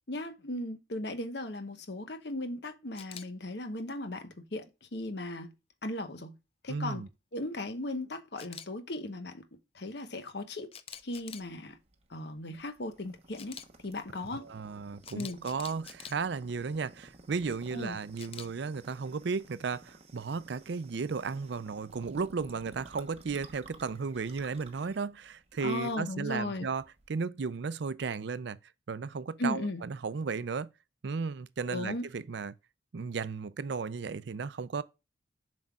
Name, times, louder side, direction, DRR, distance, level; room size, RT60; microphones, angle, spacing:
voice 1, 0.1-4.7 4.9-5.5 5.8-6.4 6.6-7.0 7.3-9.4 9.7-10.7 11.0-11.8 12.1-13.6 13.8-14.4 15.1-15.4 17.7-18.0 25.6-26.7 29.4-29.8 31.7-32.1, left 1 dB, 55° left, 1.0 m, -37 dB
Camera, 3.0-3.3 8.4-8.7 10.7-11.5 13.4-13.7 15.0-16.1 18.2-18.5, left 8 dB, 30° left, 0.4 m, -45 dB
voice 2, 6.7-7.1 14.3-28.6 28.9-30.7 31.0-32.5 32.9-34.8, right 5 dB, 65° right, 0.4 m, -35 dB
sound 1, 10.9-27.2, right 2 dB, 30° right, 1.0 m, -55 dB
7.5 x 5.4 x 2.3 m
head